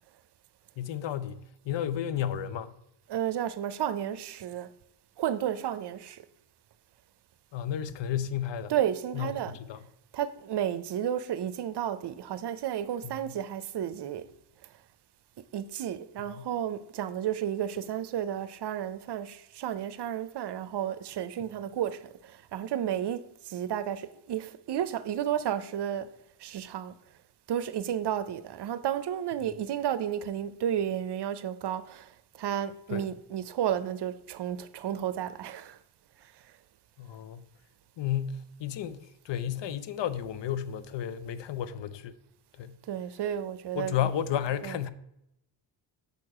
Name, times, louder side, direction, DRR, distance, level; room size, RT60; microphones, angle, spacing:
voice 1, 0.8-2.8 7.5-8.7 9.1-9.8 13.3-13.4 16.3-16.4 32.9-33.0 37.0-37.4 38.0-42.2 42.6-42.8 43.7-44.9, left 10 dB, 65° left, 0.7 m, -32 dB
voice 2, 3.1-4.7 5.2-6.3 8.7-9.6 10.1-14.3 15.5-26.1 26.4-26.9 27.5-35.8 42.9-44.1 44.6-44.8, right 10 dB, 60° right, 0.7 m, -32 dB
6.7 x 4.6 x 4.8 m
cardioid pair, 75°, 47 cm